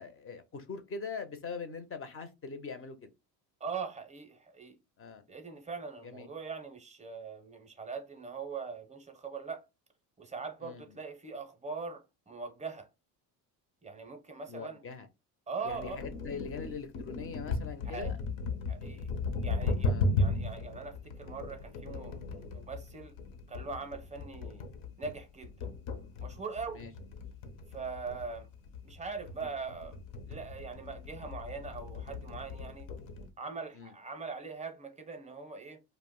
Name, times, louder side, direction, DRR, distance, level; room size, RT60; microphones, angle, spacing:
voice 1, 0.0-3.1 5.0-5.2 6.0-6.3 10.6-10.8 14.5-15.1 15.6-18.2 19.9-20.1 26.7-26.9 33.7-33.9, left 5 dB, 30° left, 0.5 m, -42 dB
voice 2, 3.6-4.8 5.3-9.6 10.2-12.9 13.8-14.8 15.5-16.0 17.8-18.1 18.7-19.1 19.4-19.9 20.2-23.2 23.5-24.6 25.0-25.7 26.2-26.8 27.7-28.5 28.8-30.0 30.3-32.9 33.4-35.8, right 5 dB, 15° right, 0.6 m, -41 dB
sound 1, 15.7-33.3, left 3 dB, 75° left, 0.8 m, -36 dB
2.4 x 2.1 x 3.6 m
supercardioid pair, 95°, 48 cm